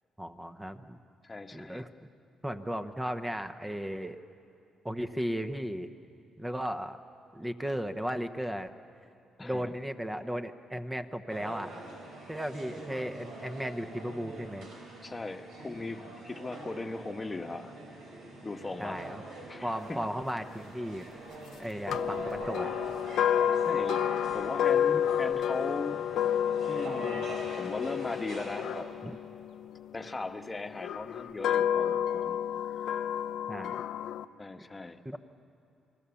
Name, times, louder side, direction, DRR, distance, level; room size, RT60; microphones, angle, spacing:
voice 1, 0.2-1.0 1.5-1.9 2.4-4.2 4.8-5.9 6.4-7.0 7.3-8.7 9.4-11.7 12.3-14.7 18.8-19.2 19.6-21.1 21.6-22.7 29.0-29.1 33.5-33.8 35.0-35.2, equal, 10° right, 9 dB, 0.9 m, -35 dB
voice 2, 1.2-1.9 9.4-9.7 12.2-12.3 15.0-17.7 18.4-19.1 19.5-20.0 23.1-23.3 23.6-24.1 24.3-26.0 26.7-27.3 27.6-28.9 29.9-32.4 32.6-33.0 34.4-35.0, left 3 dB, 20° left, 6 dB, 1.2 m, -38 dB
sound 1, 11.3-28.8, right 2 dB, 90° right, 5.2 m, -44 dB
sound 2, 21.9-30.0 30.8-34.2, left 9 dB, 80° left, 0.6 m, -30 dB
28.5 x 20.5 x 7.1 m, 2.6 s
cardioid pair, 90°, 0 cm